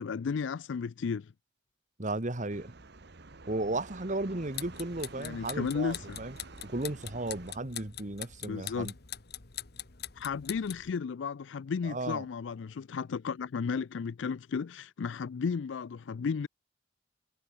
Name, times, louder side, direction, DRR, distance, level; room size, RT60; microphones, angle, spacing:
voice 1, 0.0-1.3 5.2-6.2 8.4-8.9 10.2-16.5, left 5 dB, 75° left, 0.4 m, -34 dB
voice 2, 2.0-2.7 3.5-6.4 6.7-8.9 11.8-12.2, right 2 dB, 40° right, 1.7 m, -35 dB
sound 1, 2.5-7.5, right 3 dB, 60° right, 1.2 m, -49 dB
sound 2, 4.4-10.9, left 12 dB, 55° left, 1.6 m, -43 dB
head